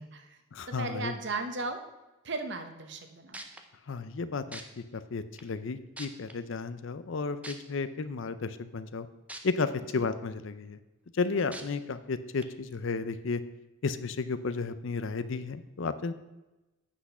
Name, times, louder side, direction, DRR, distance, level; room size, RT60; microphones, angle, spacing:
voice 1, 0.0-0.4 0.8-1.8 2.2-3.4 10.0-10.1, right 3 dB, 50° right, 7 dB, 0.9 m, -36 dB
voice 2, 0.5-1.1 3.9-9.1 9.4-10.8 11.1-13.4 13.8-16.1, left 4 dB, 60° left, 13 dB, 0.5 m, -33 dB
sound 1, 3.0-3.1 3.3-3.6 4.5-4.6 5.4-5.5 6.0-6.3 7.4-7.5 9.3-9.4 9.9-10.0 11.5-11.6 12.4-12.5, right 2 dB, 5° right, 0.5 m, -41 dB
8.3 x 6.0 x 5.5 m, 1.0 s
head